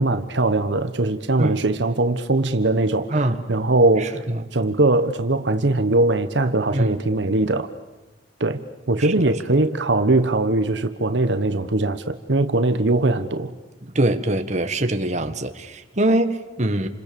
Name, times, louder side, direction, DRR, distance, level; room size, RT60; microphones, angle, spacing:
voice 1, 0.0-4.2 4.5-7.7 8.4-13.5, right 2 dB, 75° right, 9 dB, 1.2 m, -21 dB
voice 2, 4.0-4.4 6.7-7.0 9.0-9.2 9.6-9.7 13.8-16.9, right 1 dB, 40° right, 7 dB, 1.6 m, -23 dB
28.5 x 27.0 x 7.0 m, 1.1 s
head